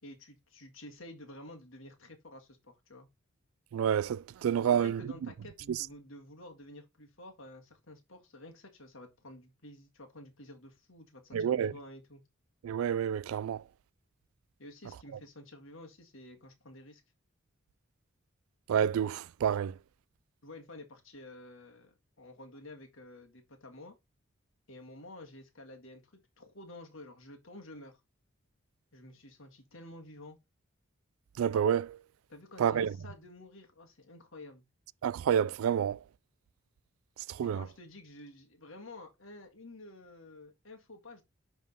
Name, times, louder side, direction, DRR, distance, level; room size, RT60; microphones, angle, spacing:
voice 1, 0.0-3.1 4.6-12.2 14.6-17.0 20.4-23.9 24.7-28.0 28.9-30.4 32.3-34.6 37.4-41.2, left 1 dB, 65° left, 1.8 m, -50 dB
voice 2, 3.7-5.0 5.7-5.8 11.3-11.7 12.6-13.6 18.7-19.7 31.4-32.0 32.6-32.9 35.0-36.0 37.4-37.6, right 8 dB, 75° right, 0.3 m, -28 dB
10.5 x 3.6 x 4.0 m
head